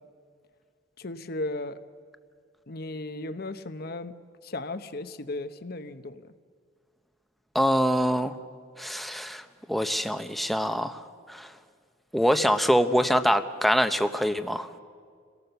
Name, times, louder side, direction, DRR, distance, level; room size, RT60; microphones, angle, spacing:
voice 1, 1.0-1.8 2.7-4.1 4.4-6.2, left 2 dB, 55° left, 10 dB, 0.9 m, -35 dB
voice 2, 7.5-8.3 8.8-11.0 11.3-11.5 12.1-14.8, equal, ahead, 8 dB, 0.8 m, -24 dB
28.5 x 18.0 x 6.9 m, 2.1 s
head